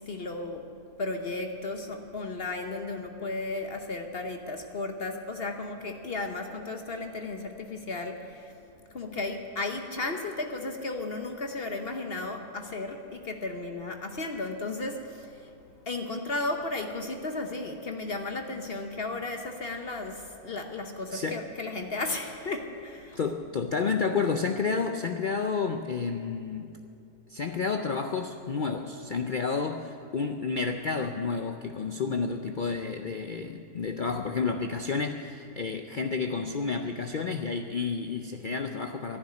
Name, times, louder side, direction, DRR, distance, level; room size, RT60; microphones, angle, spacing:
voice 1, 0.0-8.5 8.9-15.5 15.9-23.2, left 2 dB, 45° left, 5 dB, 1.0 m, -34 dB
voice 2, 21.1-21.4 23.2-26.8 27.3-39.2, left 5 dB, 75° left, 6 dB, 0.4 m, -30 dB
11.5 x 10.5 x 9.7 m, 2.7 s
omnidirectional pair, 1.6 m